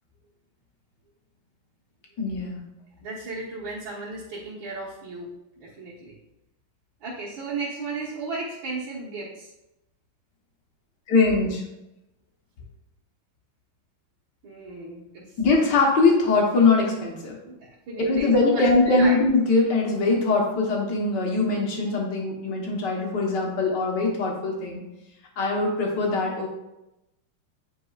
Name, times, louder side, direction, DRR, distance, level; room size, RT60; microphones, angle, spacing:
voice 1, 2.2-2.6 11.1-11.6 15.4-17.4 18.1-24.8 25.4-26.5, left 3 dB, 60° left, -1 dB, 1.8 m, -22 dB
voice 2, 3.0-6.1 7.0-9.5 14.4-15.4 17.4-19.2, right 3 dB, 70° right, -8 dB, 2.0 m, -35 dB
9.0 x 4.5 x 2.4 m, 0.93 s
omnidirectional pair, 2.3 m